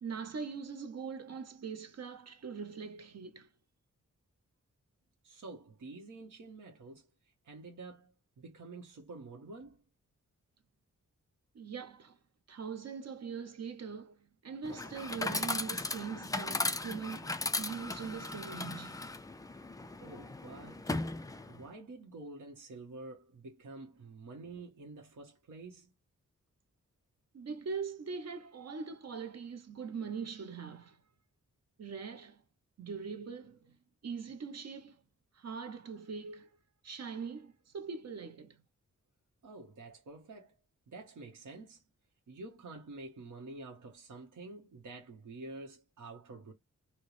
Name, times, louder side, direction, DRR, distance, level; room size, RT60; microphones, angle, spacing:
voice 1, 0.0-3.5 11.5-12.2 12.5-19.1 27.3-31.0 31.8-32.4 32.8-33.8 34.0-35.0 35.3-36.5 36.8-38.6, right 5 dB, 55° right, 0.8 m, -42 dB
voice 2, 5.2-7.1 7.4-9.8 20.0-20.9 21.5-25.9 39.4-40.6 40.9-41.8 42.3-46.5, right 3 dB, 80° right, 1.1 m, -48 dB
Chatter / Coin (dropping), 14.6-21.7, left 2 dB, 10° left, 0.3 m, -37 dB
4.3 x 2.1 x 3.1 m
wide cardioid pair, 135°, 31 cm